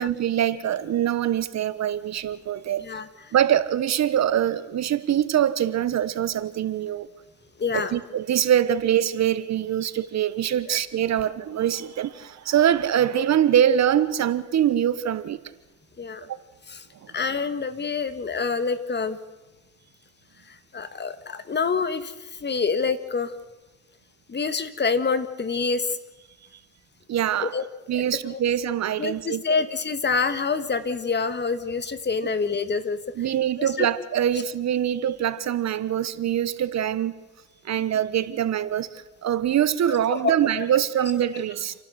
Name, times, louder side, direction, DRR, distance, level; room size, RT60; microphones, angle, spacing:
voice 1, 0.0-2.8 3.3-7.1 7.7-15.4 16.2-16.4 27.1-27.5 27.9-29.4 33.2-37.1 37.6-41.7, right 10 dB, 60° right, 1.3 m, -24 dB
voice 2, 7.6-7.9 10.7-10.8 16.0-16.3 16.7-16.9 17.1-19.2 20.5-23.3 24.3-26.0 27.4-27.6 28.3-28.4 29.0-33.0 33.6-33.9 39.9-40.3 40.6-40.7, left 5 dB, 35° left, 1.8 m, -27 dB
30.0 x 12.0 x 8.0 m
cardioid pair, 90°, 30 cm